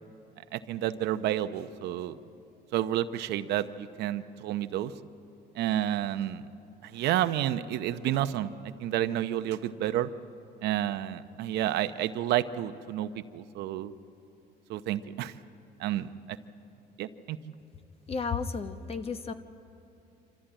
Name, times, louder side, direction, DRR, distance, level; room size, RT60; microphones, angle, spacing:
voice 1, 0.5-2.2 2.7-4.9 5.5-6.4 6.8-8.5 8.8-10.1 10.6-13.9 14.7-15.3 15.8-16.1 17.0-17.4, right 12 dB, 80° right, 11 dB, 0.8 m, -30 dB
voice 2, 18.1-19.3, left 5 dB, 35° left, 9 dB, 1.2 m, -33 dB
26.5 x 14.0 x 8.8 m, 2.7 s
cardioid pair, 110°, 17 cm